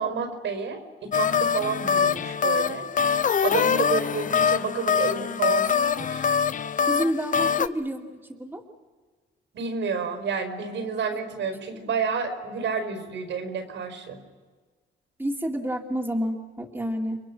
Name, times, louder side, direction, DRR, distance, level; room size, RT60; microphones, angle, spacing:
voice 1, 0.0-2.9 3.4-5.7 5.9-6.2 9.5-14.2, right 5 dB, 75° right, 6 dB, 5.0 m, -30 dB
sound 1, 1.1-7.7, left 7 dB, 40° left, 0.7 m, -24 dB
voice 2, 6.9-8.6 15.2-17.2, equal, 10° right, 0 dB, 2.6 m, -29 dB
30.0 x 22.5 x 6.2 m, 1.4 s
cardioid pair, 90°, 20 cm